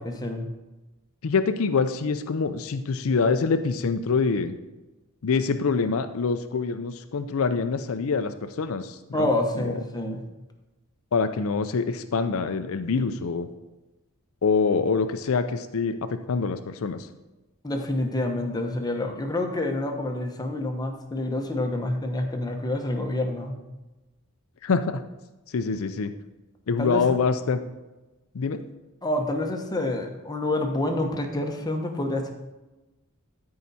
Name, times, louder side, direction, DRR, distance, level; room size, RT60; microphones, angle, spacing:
voice 1, 1.2-4.6 5.2-9.3 9.6-9.8 11.1-13.5 14.4-17.1 24.6-25.0 25.5-26.1 26.7-27.6 28.3-28.6, left 4 dB, 65° left, 9 dB, 0.5 m, -25 dB
voice 2, 9.1-10.2 17.6-23.6 26.8-27.0 29.0-32.3, left 1 dB, 20° left, 3 dB, 1.0 m, -27 dB
13.0 x 4.8 x 4.1 m, 1.1 s
head